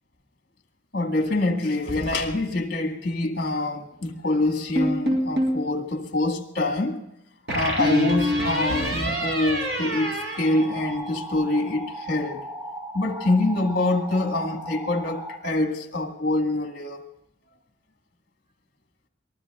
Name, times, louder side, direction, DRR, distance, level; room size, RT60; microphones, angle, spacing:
voice 1, 0.9-7.0 7.5-12.4 12.9-17.0, left 2 dB, 50° left, 2.0 m, -25 dB
sound 1, 4.8-5.6 7.5-11.3, equal, 60° right, 5.0 m, -26 dB
sound 2, 10.3-15.4, right 1 dB, 15° right, 3.3 m, -37 dB
23.5 x 19.5 x 2.5 m
head